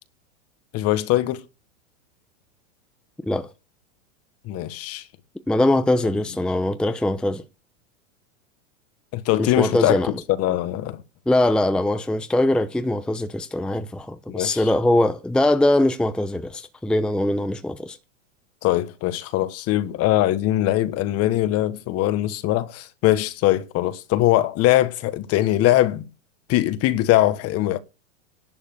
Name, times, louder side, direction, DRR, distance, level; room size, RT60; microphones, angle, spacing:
voice 1, 0.7-1.4 4.4-5.1 9.1-10.0 10.3-11.0 14.3-14.6 18.6-26.1 26.5-27.8, left 15 dB, 40° left, 1.3 m, -21 dB
voice 2, 5.5-7.4 9.4-10.1 11.3-18.0, left 1 dB, ahead, 0.7 m, -22 dB
11.0 x 7.2 x 6.8 m
hypercardioid pair, 120°, 37 cm